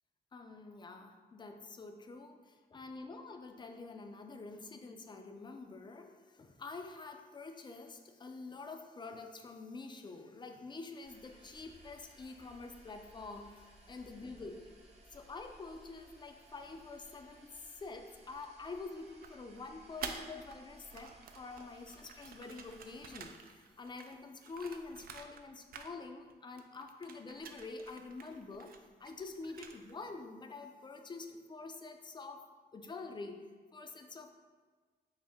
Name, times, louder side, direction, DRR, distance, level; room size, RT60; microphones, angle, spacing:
voice 1, 0.3-14.6 15.1-28.7 29.0-32.5 32.7-34.3, left 3 dB, 25° left, 5 dB, 0.4 m, -47 dB
sound 1, 11.0-23.3, right 2 dB, 40° right, 0.7 m, -60 dB
sound 2, 19.2-20.6 20.8-25.5 25.7-26.3 26.6-30.0, right 6 dB, 60° right, 0.4 m, -49 dB
5.4 x 2.1 x 3.5 m, 1.5 s
cardioid pair, 90°, 17 cm